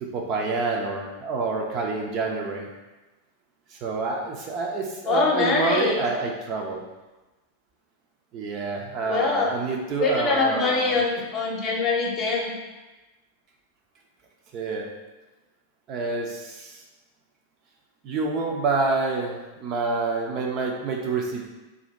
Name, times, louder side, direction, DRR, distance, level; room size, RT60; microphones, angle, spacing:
voice 1, 0.0-2.7 3.7-6.8 8.3-11.0 14.5-14.9 15.9-16.8 18.0-21.5, right 3 dB, 35° right, 0 dB, 0.5 m, -27 dB
voice 2, 5.1-6.1 9.1-9.5 10.0-12.5, left 4 dB, 35° left, -2 dB, 0.8 m, -23 dB
2.7 x 2.6 x 4.1 m, 1.1 s
figure-of-eight pair, 90°, 0 cm